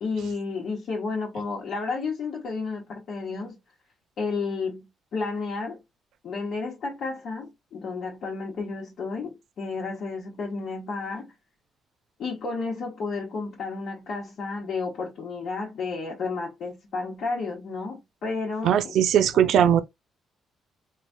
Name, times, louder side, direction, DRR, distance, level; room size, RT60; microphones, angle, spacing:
voice 1, 0.0-3.6 4.2-5.8 6.2-11.3 12.2-18.9 19.3-19.6, left 4 dB, 65° left, 1.1 m, -32 dB
voice 2, 18.6-19.8, right 9 dB, 75° right, 0.4 m, -19 dB
3.2 x 2.3 x 2.5 m
cardioid pair, 90°, 0 cm